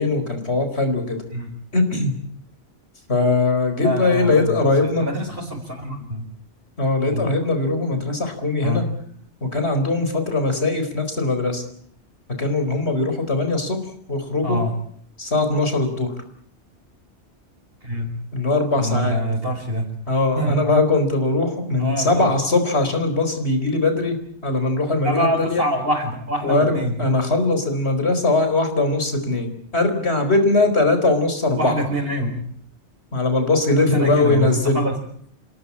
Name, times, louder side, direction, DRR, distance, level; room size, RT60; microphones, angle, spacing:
voice 1, 0.0-1.2 1.7-2.1 3.1-5.1 6.8-8.8 9.4-11.6 12.4-13.8 14.1-14.6 15.2-16.1 18.3-19.2 20.1-24.2 24.4-25.6 26.4-31.7 33.1-34.9, left 2 dB, 60° left, 7 dB, 4.7 m, -20 dB
voice 2, 3.8-6.2 7.1-7.3 8.6-8.8 14.4-14.7 17.8-18.1 18.8-19.9 20.4-20.6 21.8-22.3 25.0-27.0 31.6-32.4 33.8-35.0, equal, 50° right, -2 dB, 4.5 m, -25 dB
27.5 x 18.0 x 8.7 m, 0.64 s
omnidirectional pair, 1.2 m